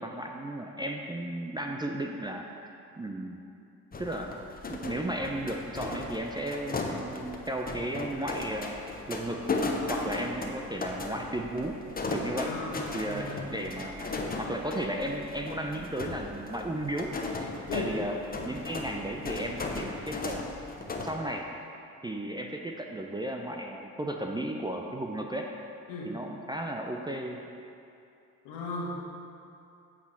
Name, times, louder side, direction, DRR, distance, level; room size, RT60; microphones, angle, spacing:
voice 1, 0.0-2.7 3.0-3.4 4.0-4.4 4.7-9.5 9.9-11.8 12.1-12.5 12.9-18.2 18.4-20.4 21.0-21.4 22.0-25.5 26.0-27.5, right 1 dB, 10° right, 1 dB, 0.5 m, -35 dB
sound 1, 3.9-21.1, left 3 dB, 20° left, 0.8 m, -36 dB
voice 2, 12.4-13.5 17.7-18.0 25.9-26.1 28.4-28.9, left 3 dB, 65° left, -3 dB, 1.6 m, -36 dB
8.2 x 4.9 x 4.4 m, 2.6 s
hypercardioid pair, 50°, 44 cm